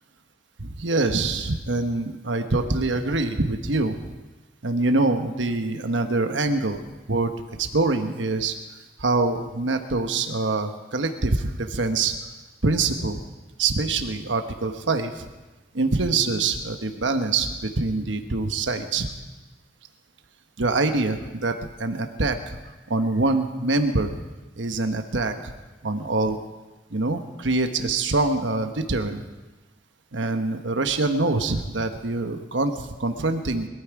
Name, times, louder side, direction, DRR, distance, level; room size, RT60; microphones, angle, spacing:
voice 1, 0.6-4.1 4.6-6.8 7.1-7.3 7.6-8.5 9.0-12.2 12.6-13.2 13.6-15.3 15.7-19.1 20.6-24.1 24.6-25.5 25.8-26.4 26.9-29.2 30.1-33.7, right 3 dB, 85° right, 6 dB, 1.2 m, -25 dB
21.5 x 13.0 x 4.8 m, 1.2 s
head